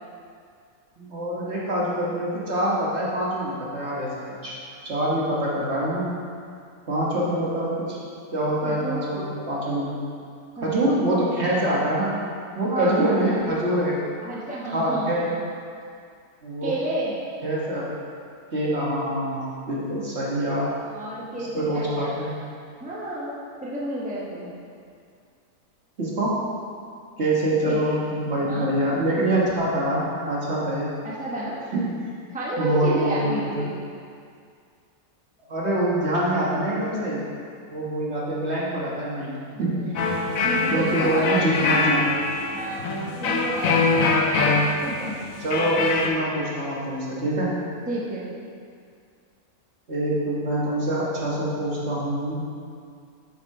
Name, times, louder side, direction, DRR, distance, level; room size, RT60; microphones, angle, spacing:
voice 1, 1.0-4.5 4.8-6.1 6.9-8.0 8.3-10.0 10.6-12.2 12.5-14.0 14.7-15.3 16.4-16.8 17.4-17.9 18.5-20.7 21.4-22.3 26.0-26.4 27.2-30.9 31.7-32.1 32.6-33.5 35.5-37.2 37.7-39.8 40.7-42.2 45.4-47.6 49.9-52.5, right 1 dB, 50° right, -6 dB, 1.7 m, -25 dB
voice 2, 8.6-9.3 10.6-11.0 12.7-13.1 14.2-15.1 16.6-17.1 20.9-22.3 22.8-24.5 27.7-27.8 28.3-28.9 31.0-31.6 32.3-33.8 39.5-39.9 40.4-42.0 42.5-43.0 43.2-44.0 44.5-45.1 47.9-48.3, right 1 dB, 5° right, -6 dB, 1.1 m, -31 dB
sound 1, 39.9-46.1, left 3 dB, 70° left, 1.1 m, -23 dB
7.6 x 6.0 x 4.8 m, 2.3 s
omnidirectional pair, 1.5 m